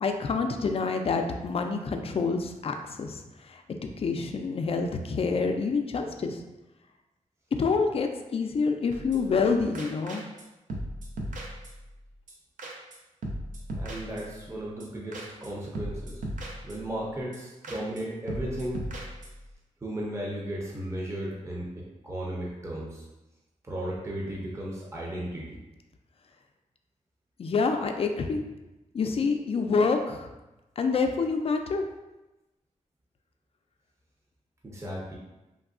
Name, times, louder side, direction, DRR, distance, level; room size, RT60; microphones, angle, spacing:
voice 1, 0.0-3.2 3.5-3.6 4.0-6.4 7.6-10.2 27.4-28.4 28.9-30.3 30.8-31.9, left 4 dB, 50° left, 5 dB, 0.3 m, -27 dB
sound 1, 8.9-9.5 9.7-10.4 10.7-12.0 12.3-12.4 12.6-13.0 13.2-14.5 14.8-14.9 15.1-15.5 15.7-17.0 17.3-17.4 17.6-18.0 18.3-19.5, right 1 dB, 80° right, 0.5 m, -37 dB
voice 2, 13.7-16.2 16.6-18.8 19.8-23.0 23.6-25.6 34.6-35.2, right 1 dB, 20° right, -4 dB, 0.6 m, -35 dB
3.4 x 2.2 x 2.4 m, 1.0 s
cardioid pair, 70°, 13 cm